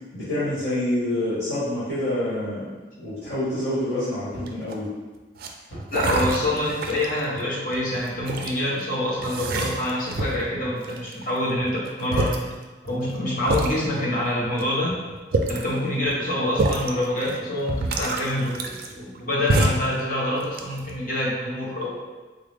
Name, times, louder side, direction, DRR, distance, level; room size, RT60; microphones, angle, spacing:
voice 1, 0.1-4.9, left 1 dB, 65° left, -13 dB, 1.4 m, -27 dB
sound 1, 4.3-4.6 5.7-6.0 6.7-7.6 8.2-8.4 9.2-9.5 10.1-10.9 11.6-11.9 12.2-15.8 16.0-16.3 16.6-17.0 17.7-18.0 18.8-19.1 19.7-19.8, right 1 dB, 85° left, 1.2 m, -44 dB
sound 2, 4.5-4.9 5.4-5.5 5.9-7.2 7.7-8.5 9.2-10.5 10.8-11.4 11.8-11.9 12.1-12.4 13.0-13.1 13.5-13.7 14.6-14.7 15.1-15.7 16.5-16.9 17.3-17.4 17.7-19.2 19.5-19.9 20.4-21.0, right 2 dB, 55° right, 0.3 m, -25 dB
voice 2, 5.9-12.5 12.8-15.0 15.5-22.0, left 1 dB, 50° left, -5 dB, 1.0 m, -26 dB
3.8 x 2.1 x 3.3 m, 1.2 s
head